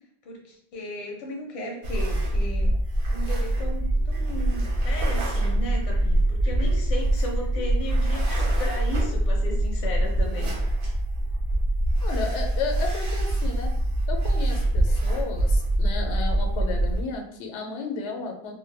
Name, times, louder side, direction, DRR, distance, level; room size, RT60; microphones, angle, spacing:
voice 1, 0.2-2.7 3.1-10.5, equal, 45° left, 0 dB, 0.5 m, -35 dB
sound 1, 1.8-17.0, right 1 dB, 60° right, 0.7 m, -24 dB
voice 2, 12.0-13.7 14.1-18.6, left 4 dB, 85° left, 2 dB, 0.9 m, -33 dB
2.2 x 2.1 x 3.2 m, 0.69 s
omnidirectional pair, 1.1 m